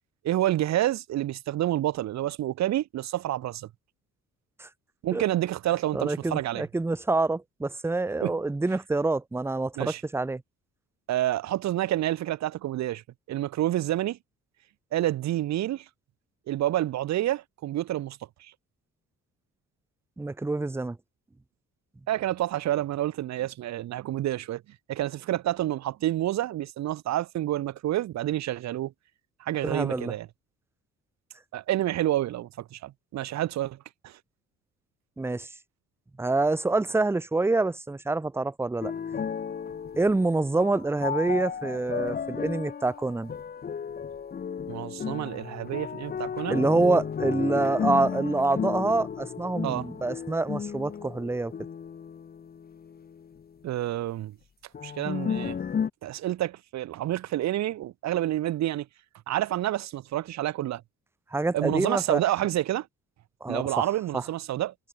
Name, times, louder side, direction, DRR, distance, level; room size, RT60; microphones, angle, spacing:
voice 1, 0.2-3.7 5.0-6.6 8.2-8.4 9.8-10.0 11.1-13.0 13.3-14.2 14.9-15.8 16.5-18.2 22.1-24.6 24.9-28.9 29.4-30.3 31.5-33.8 34.0-34.1 44.7-46.6 49.6-49.9 53.6-54.3 54.8-55.6 56.0-58.9 59.3-60.8 61.5-62.9 63.5-64.7, right 13 dB, 65° right, 0.7 m, -28 dB
voice 2, 5.9-10.4 20.2-21.0 29.6-30.1 35.2-35.5 36.2-38.9 40.0-43.3 46.5-51.5 61.3-62.2 63.4-63.9 64.1-64.2, right 3 dB, 10° right, 0.5 m, -26 dB
sound 1, 38.8-53.4 54.7-55.9, left 7 dB, 30° left, 0.7 m, -34 dB
cardioid pair, 90°, 30 cm